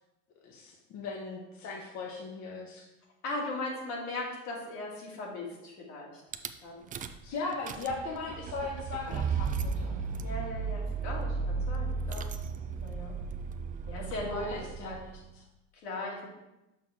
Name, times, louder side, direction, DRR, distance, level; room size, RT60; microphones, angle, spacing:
voice 1, 0.4-2.8 7.2-10.1 14.3-14.9 15.3-15.4, left 3 dB, 50° left, -1 dB, 1.1 m, -38 dB
voice 2, 3.2-6.1 6.6-6.8 10.2-12.3 12.8-13.1 13.9-15.0 15.8-16.3, left 2 dB, 75° left, -3 dB, 2.4 m, -38 dB
Rattle / Car / Engine starting, 6.3-6.5 6.9-7.3 7.5-15.3, right 5 dB, 25° right, 0.3 m, -35 dB
6.4 x 5.6 x 3.7 m, 0.97 s
supercardioid pair, 105°, 37 cm